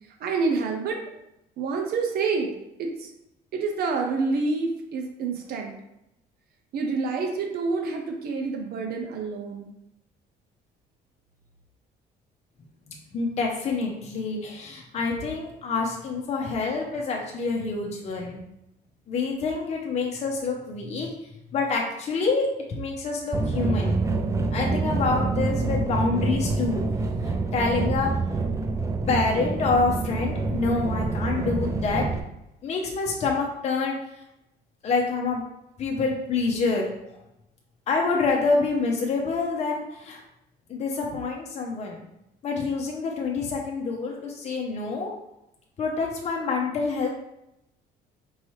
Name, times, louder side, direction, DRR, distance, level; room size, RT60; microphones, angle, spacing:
voice 1, 0.2-1.0 1.6-2.5 2.8-3.1 3.5-5.7 6.7-9.7, right 4 dB, 65° right, 2 dB, 0.7 m, -27 dB
voice 2, 13.1-18.4 19.1-21.1 21.5-22.5 22.8-24.0 24.5-26.8 27.2-28.1 29.1-32.1 32.6-34.2 34.8-35.4 35.8-36.9 37.9-40.2 40.7-42.0 42.4-45.1 45.8-47.1, left 4 dB, 40° left, -1 dB, 0.7 m, -27 dB
sound 1, 23.3-32.2, right 3 dB, 20° right, 0.4 m, -26 dB
4.6 x 2.8 x 3.1 m, 0.84 s
cardioid pair, 110°, 17 cm